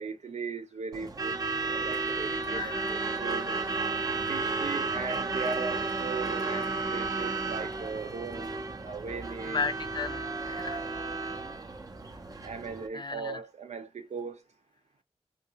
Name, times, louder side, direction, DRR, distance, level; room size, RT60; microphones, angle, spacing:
voice 1, 0.0-3.6 4.3-9.6 11.1-11.2 12.4-14.4, right 5 dB, 85° right, 0.6 m, -38 dB
Truck / Alarm, 0.9-12.9, right 3 dB, 35° right, 0.5 m, -33 dB
voice 2, 2.5-2.9 9.5-10.8 11.2-11.3 12.9-13.4, left 5 dB, 45° left, 0.4 m, -35 dB
2.8 x 2.6 x 2.8 m
wide cardioid pair, 105°, 11 cm